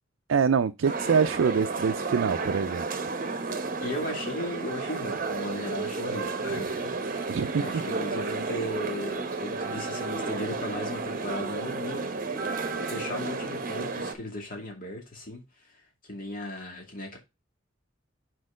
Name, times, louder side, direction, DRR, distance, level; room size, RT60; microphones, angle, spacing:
voice 1, 0.3-3.0 7.3-7.8, right 6 dB, 75° right, 0.4 m, -25 dB
sound 1, 0.8-14.1, right 3 dB, 45° right, 0.9 m, -32 dB
voice 2, 3.8-12.1 12.8-15.4 16.1-17.2, left 1 dB, 45° left, 2.4 m, -36 dB
6.4 x 4.5 x 5.0 m
head